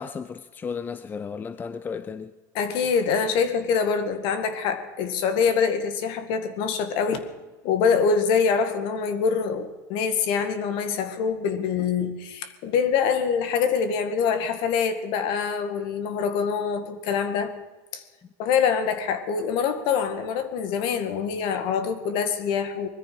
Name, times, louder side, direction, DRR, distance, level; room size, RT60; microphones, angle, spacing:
voice 1, 0.0-2.3, left 6 dB, 20° left, 0.6 m, -34 dB
voice 2, 2.5-7.2 7.6-17.5 17.9-18.0 18.4-22.9, left 6 dB, 60° left, 2.1 m, -25 dB
21.0 x 14.0 x 4.8 m
supercardioid pair, 125°, 9 cm